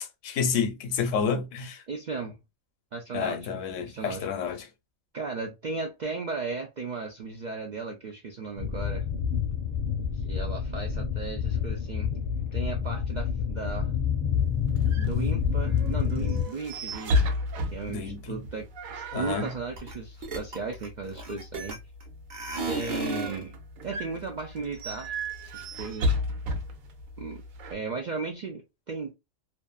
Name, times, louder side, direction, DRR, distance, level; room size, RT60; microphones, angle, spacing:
voice 1, 0.0-1.8 3.1-4.7 17.9-18.4 19.1-19.5, left 6 dB, 70° left, 1.0 m, -30 dB
voice 2, 1.9-2.4 2.9-4.3 5.1-9.1 10.1-12.1 12.5-13.9 15.0-17.4 17.7-18.7 18.9-21.8 22.7-23.6 23.8-25.2 25.5-26.1 27.2-27.4 27.7-29.1, right 4 dB, 70° right, 0.4 m, -36 dB
sound 1, 8.6-16.4, left 7 dB, 45° left, 0.7 m, -28 dB
sound 2, 14.4-27.7, left 1 dB, 90° right, 1.1 m, -34 dB
sound 3, 19.8-19.9 20.2-22.0 22.3-23.4, right 3 dB, 40° right, 0.8 m, -33 dB
2.6 x 2.4 x 2.2 m
omnidirectional pair, 1.4 m